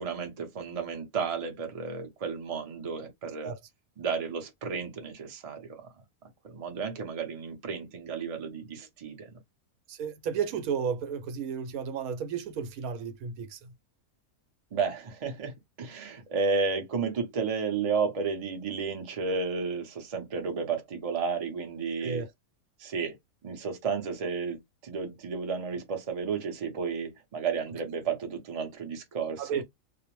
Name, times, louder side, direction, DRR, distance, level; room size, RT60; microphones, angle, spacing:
voice 1, 0.0-3.5 4.0-5.9 6.2-9.3 14.7-22.2 22.8-23.2 23.4-29.6, right 5 dB, 45° right, 0.5 m, -32 dB
voice 2, 9.9-13.7 22.0-22.3 29.4-29.6, right 7 dB, 80° right, 1.0 m, -33 dB
2.4 x 2.0 x 2.9 m
omnidirectional pair, 1.5 m